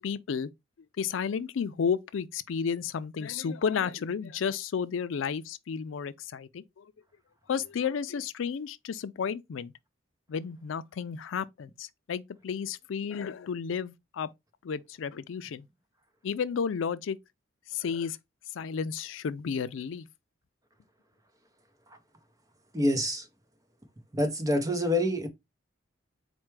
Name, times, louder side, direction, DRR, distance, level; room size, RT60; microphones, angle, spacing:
voice 1, 0.0-0.5 1.0-6.9 7.5-9.7 10.3-14.3 14.6-15.7 16.2-17.2 17.7-18.2 18.5-20.1, left 6 dB, 80° left, 0.4 m, -32 dB
voice 2, 22.7-23.3 24.1-25.3, left 1 dB, 20° right, 0.7 m, -26 dB
4.4 x 2.2 x 4.5 m
head